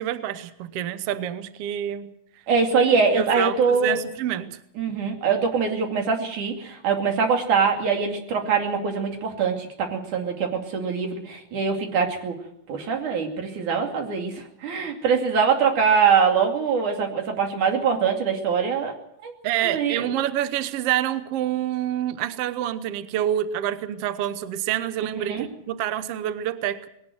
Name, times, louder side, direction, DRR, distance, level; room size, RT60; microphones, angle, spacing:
voice 1, 0.0-2.1 3.1-4.6 19.4-26.9, right 11 dB, 65° right, 12 dB, 1.8 m, -27 dB
voice 2, 2.5-4.0 4.8-12.4 12.7-18.9 19.2-19.3 19.6-20.1 25.2-25.5, right 5 dB, 85° right, 3 dB, 4.1 m, -23 dB
20.0 x 17.5 x 7.8 m, 0.75 s
omnidirectional pair, 3.4 m